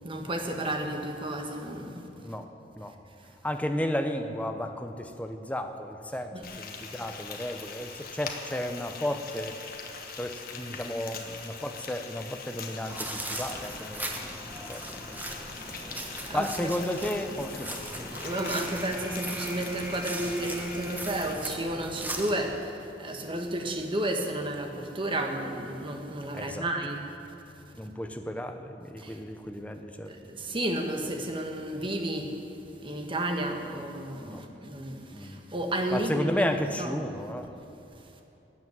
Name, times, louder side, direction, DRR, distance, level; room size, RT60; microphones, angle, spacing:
voice 1, 0.0-2.0 6.3-6.4 10.9-11.0 16.2-16.7 18.1-22.7 23.0-27.0 29.0-29.2 30.1-32.3 32.8-36.5 36.8-37.0, right 1 dB, 30° right, 3 dB, 1.3 m, -32 dB
voice 2, 2.2-2.5 2.8-3.0 3.4-9.6 10.2-15.2 16.1-18.2 26.3-26.7 27.8-30.1 34.2-34.4 35.1-35.4 35.9-37.5, left 1 dB, 10° left, 6 dB, 0.7 m, -33 dB
Frying (food), 6.4-21.3, left 5 dB, 55° left, 1.3 m, -42 dB
sound 1, 12.9-22.5, right 1 dB, 10° right, 1.1 m, -38 dB
13.5 x 8.4 x 9.3 m, 2.8 s
head